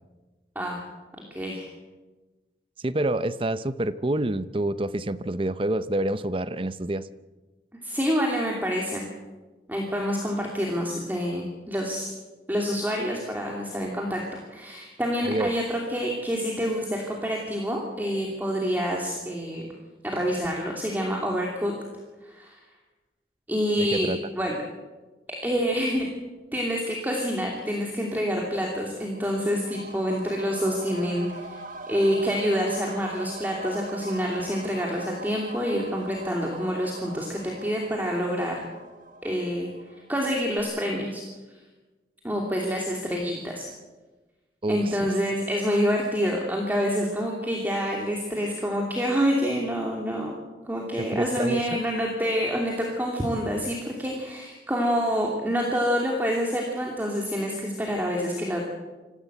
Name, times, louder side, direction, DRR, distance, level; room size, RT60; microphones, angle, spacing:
voice 1, 1.3-1.7 7.8-9.0 9.7-12.1 12.5-19.7 20.0-21.7 22.2-22.6 23.5-24.6 25.3-26.1 26.5-31.6 31.9-38.6 39.2-39.7 40.1-41.2 42.2-43.6 44.7-50.3 50.6-58.7, equal, 10° right, -1 dB, 2.8 m, -27 dB
voice 2, 2.8-7.1 15.2-15.5 23.8-24.2 44.6-45.1 51.0-51.6, right 1 dB, 30° right, 14 dB, 0.7 m, -27 dB
sound 1, 28.8-40.3 40.6-40.7, right 2 dB, 50° right, 1.6 m, -42 dB
25.5 x 15.0 x 8.1 m, 1.2 s
head